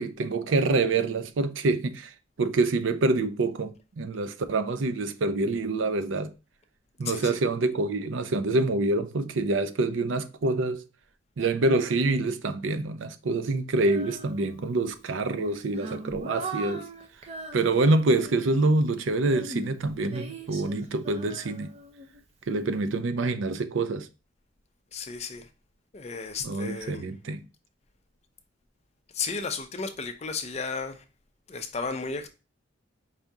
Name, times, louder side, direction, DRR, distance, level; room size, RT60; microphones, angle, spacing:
voice 1, 0.0-2.1 2.4-6.3 7.0-10.8 11.4-16.8 17.5-21.7 22.5-24.1 26.4-27.4, right 2 dB, 80° right, 0.5 m, -26 dB
voice 2, 7.0-7.4 24.9-25.5 25.9-27.0 29.1-31.0 31.5-32.3, left 4 dB, 35° left, 0.5 m, -33 dB
Female singing, 13.8-14.8 15.4-18.7 19.3-22.4, right 2 dB, 30° right, 0.6 m, -40 dB
4.9 x 2.7 x 3.4 m
head